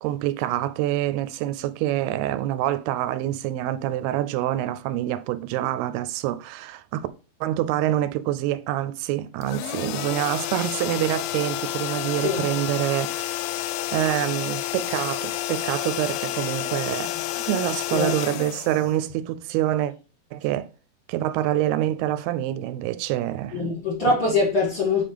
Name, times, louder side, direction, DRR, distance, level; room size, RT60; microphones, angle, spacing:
voice 1, 0.0-7.1 7.4-17.1 17.5-19.9 20.3-20.7 21.1-23.7 24.1-24.2, right 13 dB, 90° right, 2.5 m, -26 dB
sound 1, 9.4-19.4, left 14 dB, 80° left, 2.3 m, -30 dB
voice 2, 23.5-25.0, left 3 dB, 35° left, 3.2 m, -23 dB
7.3 x 5.2 x 3.4 m
omnidirectional pair, 4.5 m